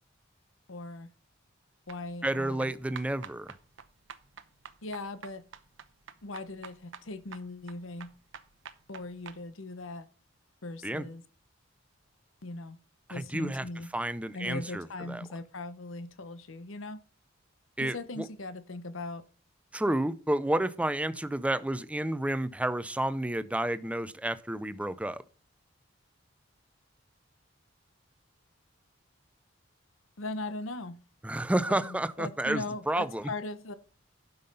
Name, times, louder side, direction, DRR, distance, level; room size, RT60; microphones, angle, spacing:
voice 1, 0.7-1.1 1.9-2.7 4.8-5.4 6.2-8.1 8.9-10.1 10.6-11.2 12.4-12.8 13.1-13.9 14.3-17.0 17.8-19.2 30.2-31.0 31.7-33.7, left 2 dB, 80° left, 1.0 m, -39 dB
sound 1, 1.9-9.4, right 6 dB, 70° right, 0.8 m, -48 dB
voice 2, 2.2-3.5 10.8-11.1 13.1-13.7 13.9-15.2 17.8-18.3 19.7-25.2 31.2-33.3, right 1 dB, 5° right, 0.5 m, -30 dB
11.5 x 5.6 x 5.4 m
head